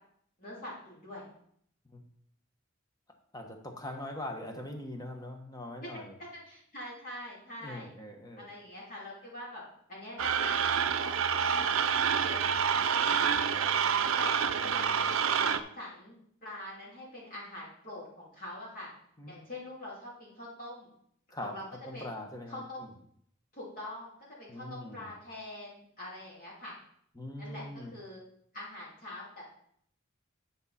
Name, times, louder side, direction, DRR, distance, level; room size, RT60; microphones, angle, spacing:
voice 1, 0.4-1.2 5.8-6.0 6.4-7.9 8.5-9.6 9.9-10.6 11.0-11.7 12.2-12.4 13.0-13.3 13.6-13.8 14.1-15.0 15.4-16.1 16.4-18.9 19.3-20.9 21.4-21.6 21.9-22.1 22.5-22.9 23.5-26.7 27.4-28.2 28.5-29.4, left 1 dB, 45° left, -7 dB, 2.7 m, -44 dB
voice 2, 3.3-6.1 7.6-8.5 19.2-19.3 21.3-21.5 21.8-22.6 24.5-25.1 27.1-27.9, left 1 dB, 20° left, 3 dB, 1.1 m, -42 dB
sound 1, 10.2-15.6, right 7 dB, 75° right, 0.5 m, -28 dB
9.7 x 5.5 x 4.2 m, 0.67 s
head